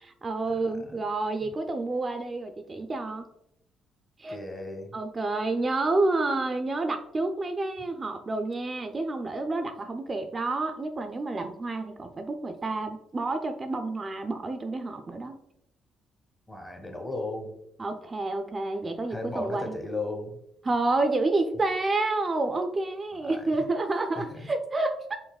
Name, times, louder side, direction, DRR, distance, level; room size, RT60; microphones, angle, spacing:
voice 1, 0.0-3.2 4.2-4.4 4.9-15.4 17.8-19.8 20.6-25.2, right 2 dB, 30° right, 6 dB, 0.3 m, -29 dB
voice 2, 4.3-4.9 16.5-17.5 19.1-20.4 23.2-23.4 24.2-24.3, left 2 dB, 15° left, 3 dB, 0.8 m, -35 dB
5.3 x 2.0 x 2.3 m, 0.76 s
cardioid pair, 90°, 0 cm